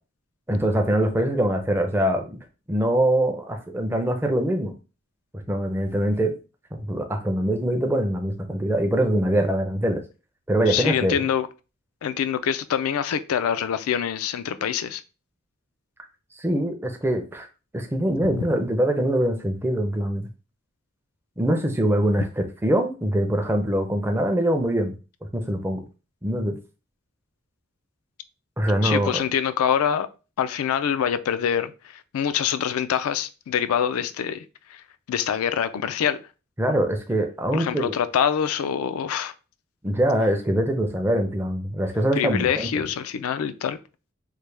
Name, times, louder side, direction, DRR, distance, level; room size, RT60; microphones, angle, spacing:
voice 1, 0.5-2.4 2.7-4.7 5.5-6.3 6.7-10.0 10.5-11.3 16.3-17.5 17.7-20.2 21.4-25.0 25.3-25.8 26.2-26.6 28.6-29.2 36.6-37.9 39.8-42.7, right 1 dB, 10° right, 0.4 m, -23 dB
voice 2, 10.7-11.5 12.0-15.0 18.2-18.4 28.8-30.1 30.4-34.4 34.7-34.8 35.1-36.2 37.5-39.3 42.2-43.8, left 8 dB, 90° left, 0.3 m, -25 dB
3.2 x 2.1 x 3.2 m
head